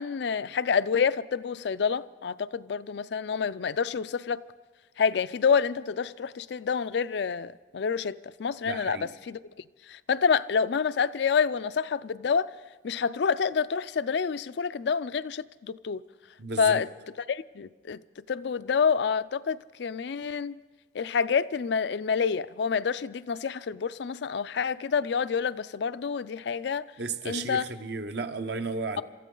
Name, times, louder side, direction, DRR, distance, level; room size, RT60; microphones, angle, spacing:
voice 1, 0.0-4.4 5.0-9.4 9.9-12.5 12.8-16.0 16.6-16.9 17.3-18.0 18.3-20.6 20.9-26.9 27.2-27.7, left 6 dB, 65° left, 0.4 m, -28 dB
voice 2, 8.7-9.1 16.4-16.8 27.0-29.0, right 3 dB, 65° right, 0.9 m, -33 dB
27.0 x 14.0 x 3.8 m
head